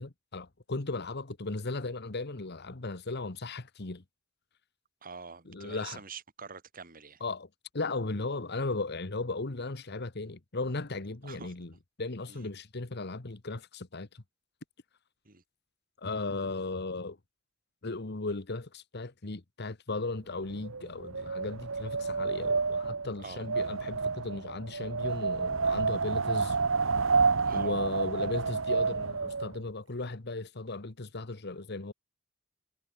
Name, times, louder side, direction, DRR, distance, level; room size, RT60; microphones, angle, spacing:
voice 1, 0.0-4.0 5.5-6.0 7.2-7.5 7.7-11.7 12.0-14.2 16.0-17.2 17.8-26.6 27.5-31.9, left 3 dB, 55° left, 1.3 m, -36 dB
voice 2, 5.0-7.2 11.2-11.5 12.3-12.5 15.2-15.4 23.2-23.4 27.4-27.7, right 5 dB, 45° right, 3.3 m, -45 dB
Wind, 20.4-29.6, right 4 dB, 85° right, 1.4 m, -30 dB
head